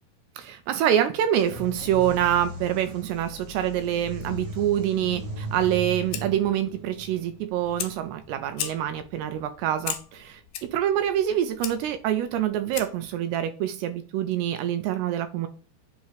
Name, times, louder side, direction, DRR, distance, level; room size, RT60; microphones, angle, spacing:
voice 1, 0.4-15.5, right 11 dB, 80° right, 2.4 m, -26 dB
sound 1, 1.4-8.9, equal, 40° right, 1.6 m, -38 dB
Fire, 5.7-13.1, left 10 dB, 85° left, 1.9 m, -39 dB
7.9 x 2.9 x 4.9 m
omnidirectional pair, 5.0 m